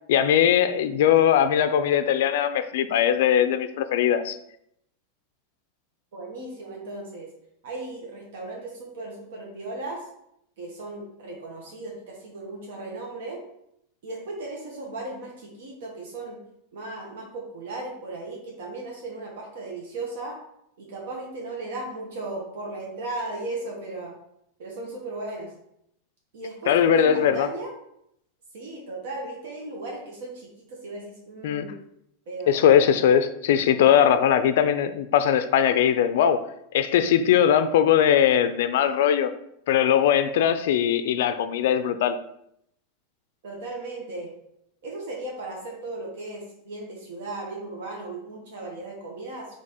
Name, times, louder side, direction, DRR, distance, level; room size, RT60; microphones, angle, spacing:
voice 1, 0.1-4.4 26.7-27.5 31.4-31.7 32.5-36.4 36.7-39.3 39.7-42.2, left 9 dB, 60° left, 11 dB, 0.4 m, -20 dB
voice 2, 6.1-7.3 7.6-10.0 10.6-13.4 14.0-16.4 16.7-20.4 20.8-24.1 24.6-25.5 26.3-27.7 28.5-31.7 32.3-32.7 43.4-44.3 44.8-49.5, right 2 dB, 70° right, -1 dB, 1.0 m, -36 dB
3.6 x 3.2 x 4.1 m, 0.76 s
supercardioid pair, 175°, 0 cm